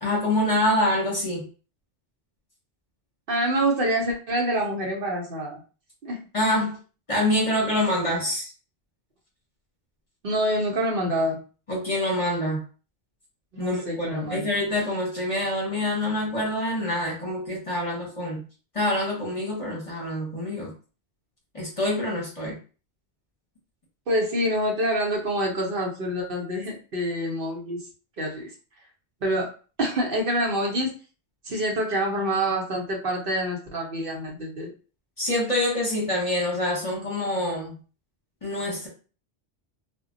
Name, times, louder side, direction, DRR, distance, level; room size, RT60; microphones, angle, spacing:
voice 1, 0.0-1.5 6.3-6.8 7.1-8.5 11.7-12.6 13.6-18.4 18.7-20.7 21.5-22.6 35.2-37.7 38.4-38.9, left 1 dB, 35° left, -3 dB, 0.8 m, -26 dB
voice 2, 3.3-5.6 6.0-6.2 10.2-11.4 13.5-14.5 24.1-27.8 28.2-28.5 29.2-29.5 29.8-30.9 31.4-34.7, right 1 dB, 55° right, 0 dB, 0.8 m, -26 dB
2.1 x 2.1 x 3.7 m, 0.36 s
omnidirectional pair, 1.1 m